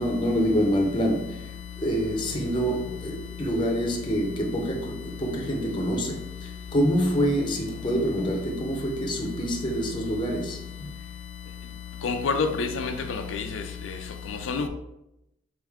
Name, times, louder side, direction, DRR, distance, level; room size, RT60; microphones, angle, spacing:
voice 1, 0.0-1.4 1.8-10.6, equal, 25° left, 0.6 m, -26 dB
voice 2, 12.0-13.6 14.5-14.7, left 4 dB, 85° left, 0.4 m, -27 dB
3.6 x 3.4 x 3.5 m
head